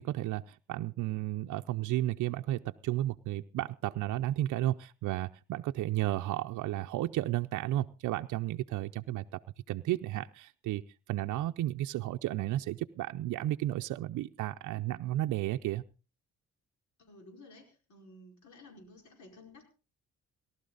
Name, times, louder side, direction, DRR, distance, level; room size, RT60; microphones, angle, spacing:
voice 1, 0.0-9.4 9.7-10.8 11.1-15.8, right 14 dB, 80° right, 6 dB, 0.6 m, -33 dB
voice 2, 17.0-19.7, left 2 dB, 70° left, 3 dB, 4.9 m, -54 dB
18.5 x 12.0 x 4.0 m, 0.34 s
cardioid pair, 90°, 30 cm